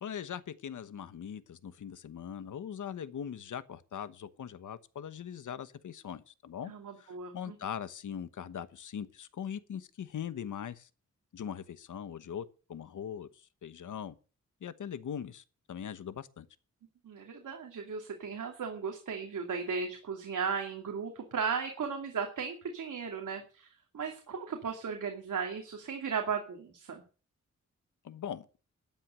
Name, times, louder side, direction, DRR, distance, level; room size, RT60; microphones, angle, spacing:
voice 1, 0.0-6.7 7.0-10.9 11.3-14.1 14.6-16.5 28.0-28.5, left 8 dB, 80° left, 1.2 m, -41 dB
voice 2, 6.7-7.5 17.0-23.7 23.9-27.0, right 6 dB, 85° right, 2.6 m, -36 dB
13.0 x 9.3 x 6.7 m
wide cardioid pair, 120°, 30 cm